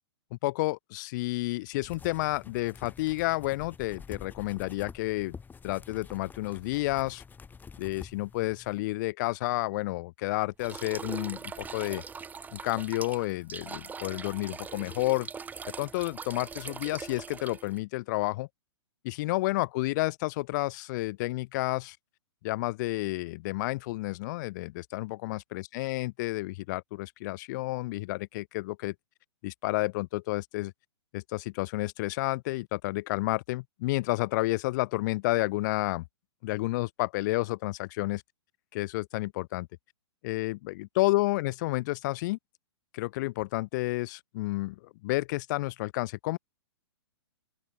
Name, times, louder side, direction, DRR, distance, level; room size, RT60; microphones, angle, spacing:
voice 1, 0.3-5.3 5.6-7.2 7.8-12.0 12.5-15.3 15.8-18.5 19.0-22.0 22.4-28.9 29.4-30.7 31.1-36.0 36.4-38.2 38.7-39.7 40.2-42.4 42.9-46.4, left 20 dB, 40° left, 1.1 m, -30 dB
sound 1, 1.8-8.8, left 5 dB, 10° left, 5.8 m, -48 dB
sound 2, 10.6-17.8, right 5 dB, 10° right, 1.5 m, -41 dB
open air
figure-of-eight pair, 115°, 15 cm